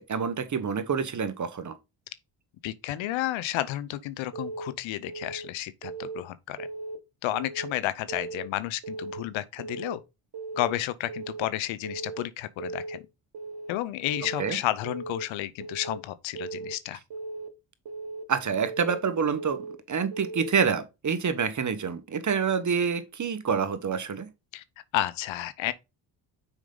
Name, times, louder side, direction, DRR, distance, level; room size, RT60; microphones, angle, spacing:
voice 1, 0.0-1.8 14.4-14.6 18.3-19.6 19.9-24.3, right 6 dB, 40° right, 1.2 m, -27 dB
voice 2, 2.6-6.7 7.2-10.0 10.6-13.0 13.7-17.0 24.5-24.6 24.9-25.7, left 14 dB, 90° left, 0.8 m, -31 dB
Keyboard (musical) / Alarm, 4.3-4.7 5.1-5.5 5.8-6.2 6.6-7.0 7.3-7.7 8.1-8.5 8.8-9.2 9.6-10.0 10.3-10.7 11.1-11.5 11.8-12.2 12.6-13.0 13.3-13.7 14.1-14.5 14.8-15.2 15.6-16.0 16.3-16.7 17.1-17.5 17.9-18.2 18.6-19.0 19.4-19.7 20.1-20.5, right 3 dB, 55° right, 1.4 m, -37 dB
6.3 x 5.1 x 3.9 m
cardioid pair, 75°, 45 cm